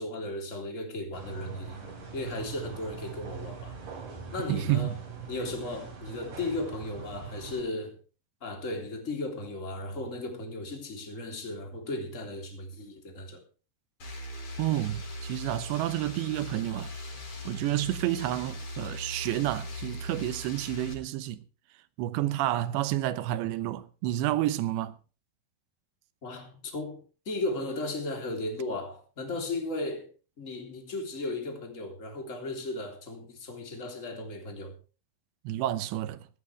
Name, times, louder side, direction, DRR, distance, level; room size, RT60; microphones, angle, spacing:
voice 1, 0.0-1.8 2.1-3.8 4.3-5.0 5.3-8.0 8.4-13.4 26.2-30.1 30.4-34.8, left 2 dB, 20° left, 3.2 m, -35 dB
sound 1, 1.1-7.6, right 5 dB, 50° right, 5.4 m, -42 dB
voice 2, 4.5-5.0 14.6-16.9 17.4-21.4 22.0-25.0 35.4-36.3, right 14 dB, 90° right, 3.2 m, -30 dB
sound 2, 14.0-20.9, left 1 dB, 35° left, 5.3 m, -39 dB
18.5 x 13.5 x 3.4 m
omnidirectional pair, 4.9 m